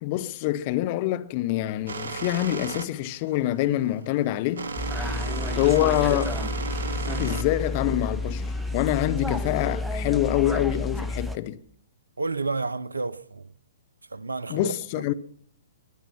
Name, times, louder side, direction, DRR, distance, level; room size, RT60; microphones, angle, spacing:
voice 1, 0.0-4.7 5.6-6.4 7.2-11.6 14.5-15.1, left 14 dB, 35° left, 0.7 m, -25 dB
sound 1, 1.9-8.8, right 4 dB, 60° right, 1.2 m, -34 dB
sound 2, 4.8-11.4, left 2 dB, 5° right, 0.9 m, -30 dB
voice 2, 12.2-13.5 14.1-15.1, right 3 dB, 75° right, 0.6 m, -31 dB
22.5 x 10.5 x 5.9 m
figure-of-eight pair, 120°, 0 cm